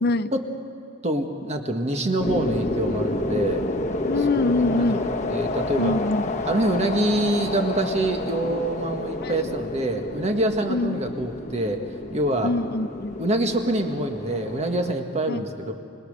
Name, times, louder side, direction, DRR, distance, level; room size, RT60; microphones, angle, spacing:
voice 1, 0.0-0.3 4.1-5.0 5.8-6.2 9.2-9.5 10.7-11.1 12.4-13.2 15.3-15.5, left 2 dB, 55° left, 12 dB, 0.7 m, -24 dB
voice 2, 1.0-3.7 4.3-4.8 5.3-5.9 6.5-11.8 12.1-12.5 13.2-15.7, right 1 dB, 35° right, 4 dB, 1.6 m, -25 dB
sound 1, 2.2-14.9, left 2 dB, 35° left, 1.1 m, -30 dB
25.5 x 20.0 x 6.7 m, 2.4 s
head